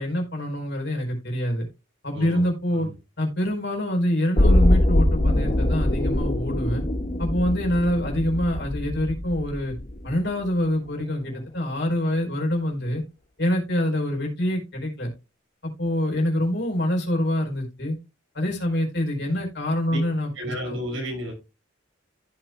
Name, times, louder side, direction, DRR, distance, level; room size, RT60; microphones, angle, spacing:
voice 1, 0.0-1.7 2.0-2.9 3.2-6.8 7.2-9.7 10.0-13.0 13.4-15.1 15.6-18.0 18.3-20.8, left 1 dB, 60° left, 1 dB, 4.5 m, -25 dB
sound 1, 4.4-10.3 10.7-10.8, left 1 dB, 40° left, 1.6 m, -23 dB
voice 2, 20.3-21.3, equal, 75° right, 0 dB, 5.9 m, -32 dB
15.0 x 5.9 x 2.3 m, 0.27 s
head